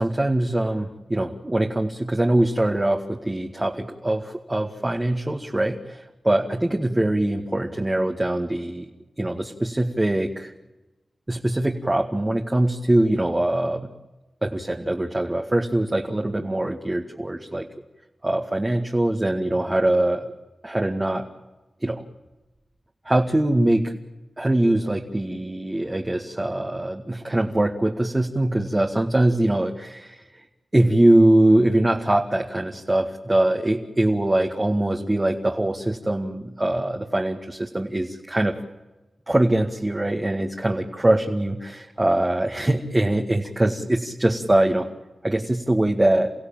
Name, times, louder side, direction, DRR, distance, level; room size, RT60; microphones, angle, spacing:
voice 1, 0.0-8.9 9.2-10.5 11.3-13.9 14.4-17.7 18.2-20.3 20.6-21.3 21.8-22.0 23.1-23.9 24.4-30.2 30.7-38.6 39.3-44.9 45.2-46.3, right 1 dB, 25° right, 1 dB, 2.0 m, -22 dB
29.5 x 16.0 x 9.0 m, 1.1 s
cardioid pair, 60°, 0 cm